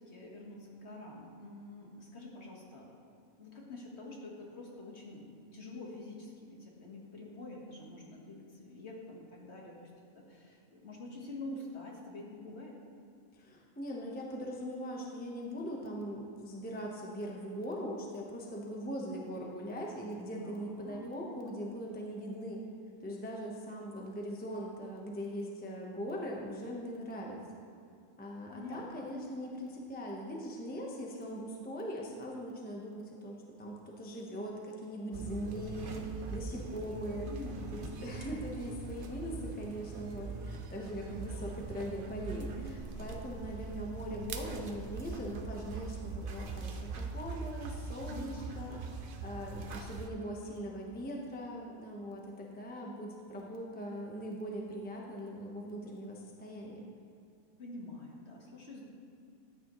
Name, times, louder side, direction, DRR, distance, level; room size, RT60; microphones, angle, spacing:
voice 1, 0.0-2.9 3.4-9.9 10.1-12.7 20.4-21.1 28.5-29.1 37.2-38.0 48.0-48.7 57.6-58.9, left 2 dB, 50° left, -2 dB, 1.7 m, -47 dB
voice 2, 13.3-22.6 23.0-27.4 28.2-37.3 37.7-56.8, equal, 10° left, -1 dB, 0.8 m, -41 dB
sound 1, 35.1-50.1, right 4 dB, 50° right, 0.6 m, -42 dB
13.5 x 9.1 x 3.1 m, 2.4 s
omnidirectional pair, 1.5 m